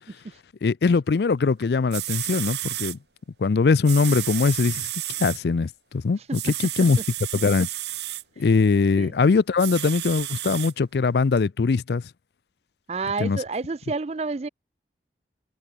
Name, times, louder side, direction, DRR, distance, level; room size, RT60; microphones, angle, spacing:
voice 1, 0.6-3.0 3.4-4.9 5.2-7.0 7.3-7.7 8.4-12.0 13.2-13.4, left 4 dB, 70° left, 0.4 m, -21 dB
sound 1, 1.6-1.7 1.9-3.0 3.8-5.4 6.3-8.2 9.6-10.7 11.4-11.5, right 15 dB, 75° right, 1.3 m, -32 dB
voice 2, 12.9-14.5, right 4 dB, 35° right, 0.4 m, -29 dB
head